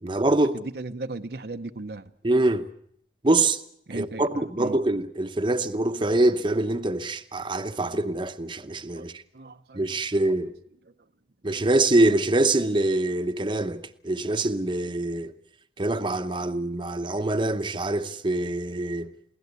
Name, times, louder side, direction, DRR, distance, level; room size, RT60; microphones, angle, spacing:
voice 1, 0.0-0.6 2.2-2.7 3.2-3.6 3.9-9.2 9.7-10.5 11.4-15.3 15.8-19.1, right 2 dB, 25° right, 0.9 m, -24 dB
voice 2, 0.5-2.0 3.9-4.8 9.0-9.1 9.3-10.0, right 2 dB, 60° right, 0.8 m, -36 dB
23.0 x 17.0 x 8.2 m
head